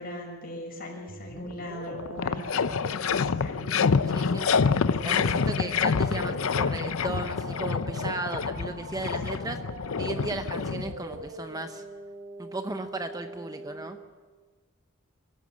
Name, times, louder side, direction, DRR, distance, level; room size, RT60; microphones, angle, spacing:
voice 1, 0.0-2.7 3.0-3.6 4.2-5.1 9.3-9.5, equal, 45° left, 0 dB, 6.4 m, -41 dB
sound 1, 1.1-13.9, right 1 dB, 50° right, 3.1 m, -43 dB
sound 2, 1.5-1.6 1.9-11.3, left 5 dB, 85° left, 0.6 m, -27 dB
voice 2, 4.1-4.6 5.0-9.6 10.0-11.8 12.4-14.0, right 2 dB, 20° right, 7 dB, 0.8 m, -36 dB
25.0 x 14.0 x 8.6 m, 1.4 s
head